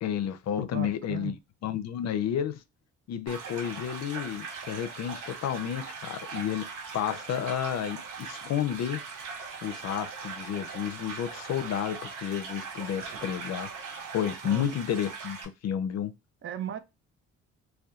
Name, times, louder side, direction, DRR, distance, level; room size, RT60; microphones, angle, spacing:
voice 1, 0.0-2.6 3.1-6.7 6.9-9.0 9.6-13.7 14.1-15.4 15.6-16.1, left 9 dB, 60° left, 0.5 m, -31 dB
voice 2, 0.6-1.4 14.4-14.7 16.4-16.8, right 9 dB, 45° right, 0.5 m, -36 dB
sound 1, 3.3-15.5, right 5 dB, 90° right, 0.7 m, -40 dB
2.7 x 2.2 x 2.3 m
cardioid pair, 90°, 30 cm